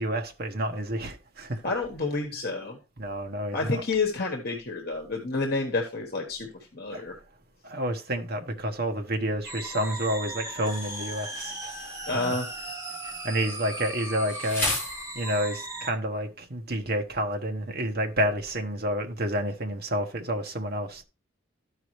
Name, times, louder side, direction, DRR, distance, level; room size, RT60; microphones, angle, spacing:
voice 1, 0.0-1.6 3.0-3.8 6.9-7.1 7.6-12.4 13.0-14.7 15.1-21.0, right 1 dB, 50° right, 1.1 m, -30 dB
voice 2, 1.6-2.8 3.5-7.1 12.1-12.5, left 3 dB, 45° left, 1.2 m, -29 dB
sound 1, 9.4-15.9, right 1 dB, 15° right, 1.3 m, -37 dB
Insect, 10.7-15.6, left 1 dB, 10° left, 3.8 m, -37 dB
13.5 x 4.8 x 3.1 m
head